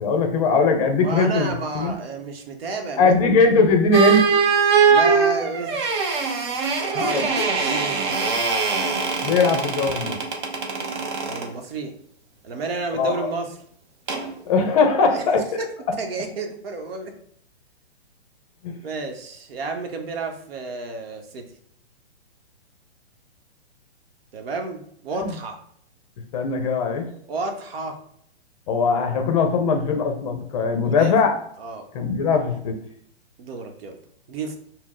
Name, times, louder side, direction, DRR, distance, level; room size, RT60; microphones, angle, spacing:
voice 1, 0.0-1.5 1.7-1.9 3.0-4.2 6.9-7.1 7.4-7.5 9.2-10.2 13.0-13.3 14.5-15.4 18.6-18.7 25.2-25.3 26.3-27.1 28.7-31.3 31.9-32.8, left 4 dB, 35° left, 4 dB, 0.6 m, -20 dB
voice 2, 1.0-3.4 4.9-6.3 6.9-8.5 11.2-11.9 12.4-13.6 15.1-15.2 15.6-15.7 16.0-17.1 18.8-21.4 24.3-25.6 27.3-28.0 30.8-31.1 31.6-31.9 33.4-34.0 34.3-34.6, right 3 dB, 60° right, 4 dB, 0.9 m, -31 dB
sound 1, 3.9-11.5 14.1-14.3, right 5 dB, 25° right, 0.4 m, -22 dB
4.3 x 2.0 x 3.7 m, 0.67 s
hypercardioid pair, 140°, 34 cm